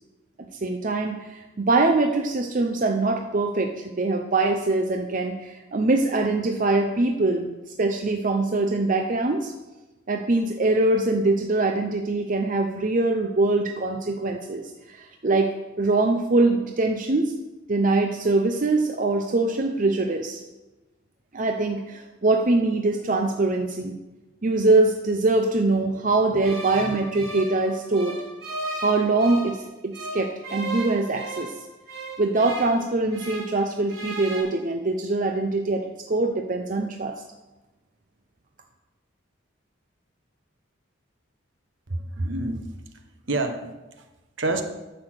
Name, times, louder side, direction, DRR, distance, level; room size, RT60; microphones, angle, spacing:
voice 1, 0.6-7.5 7.8-9.5 10.1-17.3 17.7-20.4 21.3-24.0 24.4-28.2 28.8-31.5 32.2-37.1, right 2 dB, 40° right, 3 dB, 0.6 m, -23 dB
sound 1, 26.4-29.6 29.9-33.6 33.9-34.4, right 1 dB, 80° right, 4.4 m, -35 dB
voice 2, 41.9-42.7 43.2-44.0 44.4-44.6, right 2 dB, 65° right, 6 dB, 1.1 m, -28 dB
9.6 x 7.0 x 6.3 m, 1.1 s
head